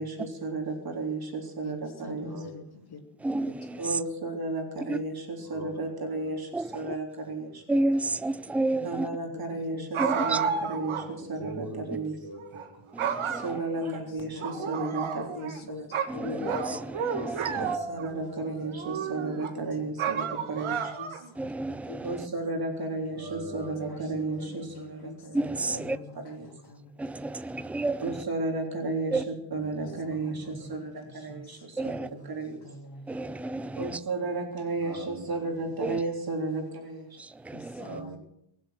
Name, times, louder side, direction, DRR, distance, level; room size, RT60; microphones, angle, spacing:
voice 1, 0.0-2.7 3.8-7.6 8.8-16.0 16.3-16.4 17.5-20.9 22.0-26.5 28.0-32.6 33.8-37.2 37.8-38.2, right 3 dB, 45° right, 2 dB, 3.6 m, -34 dB
voice 2, 1.6-3.0 3.5-3.6 8.7-8.9 9.3-9.9 10.4-10.6 13.8-14.0 14.3-15.9 16.1-16.8 17.1-17.5 19.5-19.6 21.0-21.2 21.9-22.2 22.4-22.5 23.0-23.1 23.9-27.0 30.2-31.6 32.0-32.3 32.6-33.1 37.5-38.2, left 4 dB, 50° left, 4 dB, 3.1 m, -43 dB
voice 3, 3.2-3.8 4.9-5.0 6.5-6.9 7.7-9.1 10.0-10.4 12.9-13.5 16.1-16.8 17.1-17.7 21.4-22.1 25.3-26.0 27.0-28.0 29.1-29.2 31.8-32.1 33.1-34.0 35.8-36.0 37.4-38.0, right 2 dB, 5° right, 15 dB, 0.6 m, -30 dB
sound 1, 9.9-11.1 11.4-11.5 12.4-12.6 13.0-14.0 14.4-15.6 15.9-18.1 18.7-19.5 20.0-21.3, right 7 dB, 75° right, 2.0 m, -31 dB
22.5 x 7.7 x 7.7 m, 0.75 s
cardioid pair, 105°, 49 cm